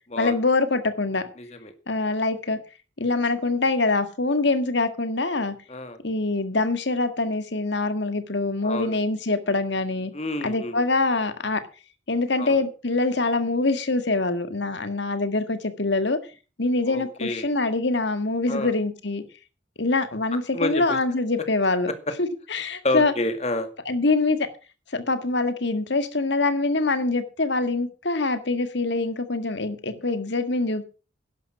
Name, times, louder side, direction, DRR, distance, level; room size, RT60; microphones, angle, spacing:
voice 1, 0.2-1.2 1.9-2.6 3.0-5.6 6.0-10.1 10.4-11.6 12.1-16.2 16.6-19.2 19.8-21.9 22.2-23.1 23.9-24.5 24.9-30.8, left 3 dB, 65° left, 1.8 m, -24 dB
voice 2, 1.4-1.7 5.7-6.0 8.6-9.0 10.1-10.8 12.4-12.6 16.9-17.5 18.5-18.7 20.5-21.0 22.8-23.7, left 2 dB, 35° left, 2.1 m, -29 dB
11.5 x 11.0 x 6.0 m
head